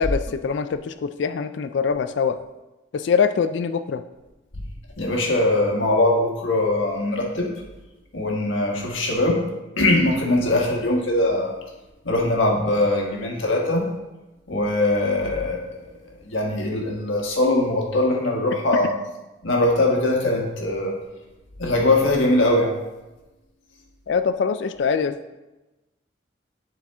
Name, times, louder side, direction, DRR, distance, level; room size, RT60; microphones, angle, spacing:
voice 1, 0.0-2.4 2.9-4.0 24.1-25.2, left 6 dB, 65° left, 10 dB, 0.4 m, -23 dB
voice 2, 5.0-7.5 8.1-9.5 9.8-11.5 12.0-13.9 14.5-15.9 16.2-18.9 19.4-20.9 21.6-22.7, left 2 dB, 80° left, -1 dB, 1.5 m, -21 dB
11.0 x 4.3 x 3.5 m, 1.0 s
head